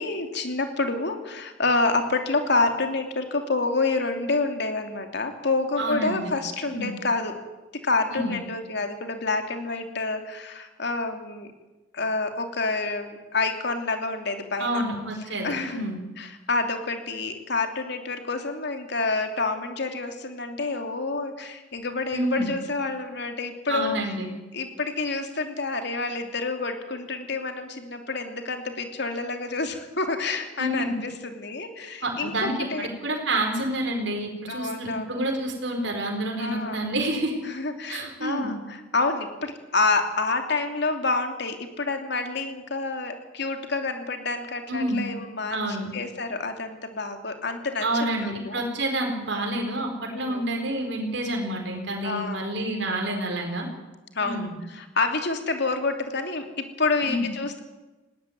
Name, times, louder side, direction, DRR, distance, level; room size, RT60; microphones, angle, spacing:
voice 1, 0.0-7.4 7.7-11.5 11.9-14.8 15.4-15.9 16.2-24.0 24.5-32.9 34.5-35.2 36.4-36.9 37.4-48.6 50.1-50.4 52.0-52.5 54.1-57.6, left 3 dB, 60° left, 5 dB, 2.9 m, -28 dB
voice 2, 5.8-6.3 6.7-6.9 8.2-8.3 14.6-16.0 22.1-22.5 23.7-24.3 30.6-30.9 32.0-37.3 37.9-38.5 44.7-45.0 45.5-45.9 47.8-53.7 54.2-54.5 57.0-57.3, right 1 dB, 65° right, 1 dB, 4.4 m, -28 dB
20.0 x 17.5 x 9.4 m, 1.1 s
head